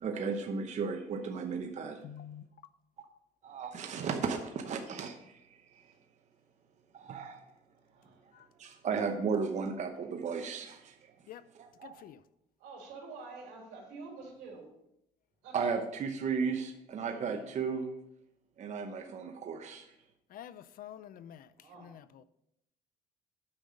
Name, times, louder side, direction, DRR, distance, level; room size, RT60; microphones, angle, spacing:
voice 1, 0.0-2.0 3.4-5.6 6.9-7.5 8.6-11.1 11.6-12.0 15.5-17.9 18.6-19.9, right 5 dB, 45° right, 0.9 m, -35 dB
voice 2, 2.0-2.7 8.3-8.5 11.3-11.5 11.8-12.2 20.3-22.2, left 10 dB, 60° left, 0.5 m, -49 dB
voice 3, 7.8-8.2 12.6-14.7 15.4-15.7 17.0-17.5 21.6-21.9, right 4 dB, 85° right, 3.3 m, -48 dB
8.9 x 5.6 x 5.0 m
cardioid pair, 110°, 17 cm